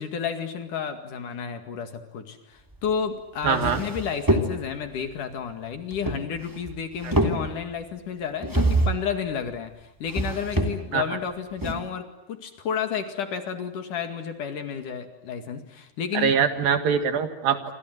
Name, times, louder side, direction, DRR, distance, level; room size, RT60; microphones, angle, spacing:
voice 1, 0.0-16.4, left 7 dB, 55° left, 8 dB, 3.4 m, -31 dB
sound 1, 3.0-3.1 3.4-4.9 5.9-6.7 7.0-7.8 8.4-9.1 10.1-11.0 11.6-11.7, right 1 dB, 5° right, 2.5 m, -25 dB
voice 2, 3.4-3.8 10.9-11.0 16.1-17.7, right 7 dB, 65° right, 9 dB, 3.5 m, -23 dB
28.5 x 26.0 x 7.9 m, 0.85 s
omnidirectional pair, 4.6 m